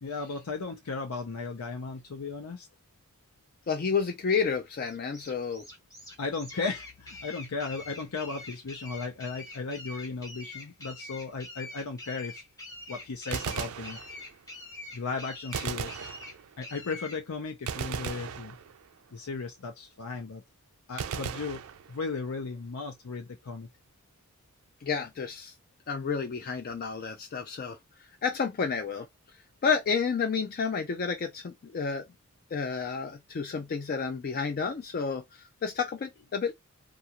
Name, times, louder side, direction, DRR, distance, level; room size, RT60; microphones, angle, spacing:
voice 1, 0.0-2.7 6.2-12.4 12.9-14.0 14.9-16.0 16.6-18.6 19.1-20.4 20.9-21.6 21.9-23.7, left 4 dB, 90° left, 0.6 m, -36 dB
voice 2, 3.7-5.6 24.8-25.5 25.9-27.8 28.2-29.1 29.6-32.1 32.5-36.5, left 5 dB, 45° left, 0.4 m, -30 dB
sound 1, 4.8-17.2, left 2 dB, 15° left, 0.9 m, -45 dB
Gunshot gunfire, 13.3-14.5 15.5-16.8 17.7-19.1 21.0-22.3, right 7 dB, 70° right, 0.4 m, -37 dB
2.4 x 2.4 x 2.8 m
head